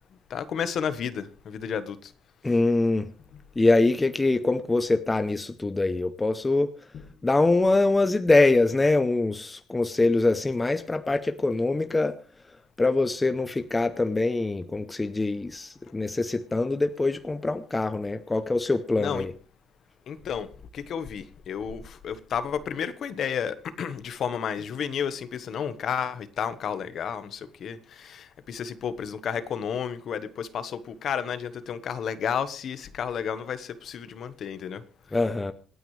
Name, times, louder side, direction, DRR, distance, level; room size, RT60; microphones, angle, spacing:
voice 1, 0.3-2.1 6.9-7.0 19.0-19.3 20.1-34.8, left 7 dB, 50° left, 12 dB, 1.2 m, -32 dB
voice 2, 2.4-3.1 3.6-6.7 7.2-12.2 12.8-19.3 35.1-35.5, left 2 dB, 15° left, 10 dB, 0.7 m, -24 dB
26.5 x 9.4 x 3.3 m, 0.38 s
cardioid pair, 155°, 0 cm